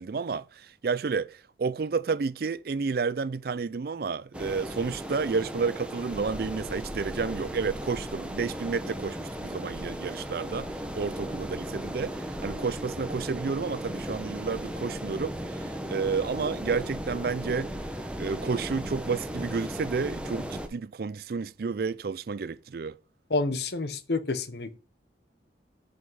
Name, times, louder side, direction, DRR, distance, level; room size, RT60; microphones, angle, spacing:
voice 1, 0.0-17.8 18.2-23.0, right 5 dB, 55° right, 0.4 m, -31 dB
sound 1, 4.3-20.7, equal, 5° right, 1.0 m, -36 dB
voice 2, 23.3-24.8, left 3 dB, 60° left, 1.0 m, -29 dB
7.9 x 5.2 x 5.5 m
head